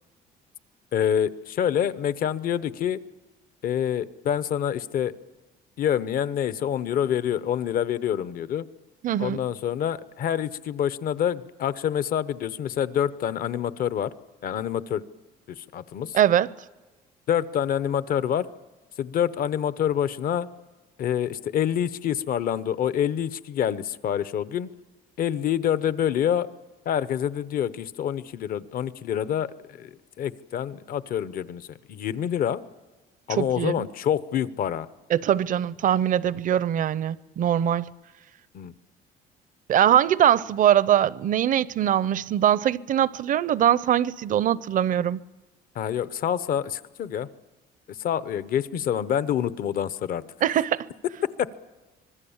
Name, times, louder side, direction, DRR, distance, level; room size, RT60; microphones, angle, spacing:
voice 1, 0.9-3.0 3.6-5.1 5.8-8.7 9.2-14.1 14.4-15.0 15.5-16.2 17.3-18.5 19.0-20.5 21.0-24.7 25.2-26.5 26.9-29.5 29.8-29.9 30.2-32.6 33.3-34.9 38.5-38.7 45.7-47.3 47.9-50.2 51.4-51.6, left 9 dB, 60° left, 0.8 m, -26 dB
voice 2, 9.0-9.4 16.1-16.5 33.4-33.9 35.1-37.9 39.7-45.2 50.4-50.9, right 10 dB, 50° right, 0.6 m, -22 dB
25.5 x 20.0 x 7.2 m
cardioid pair, 110°, 17 cm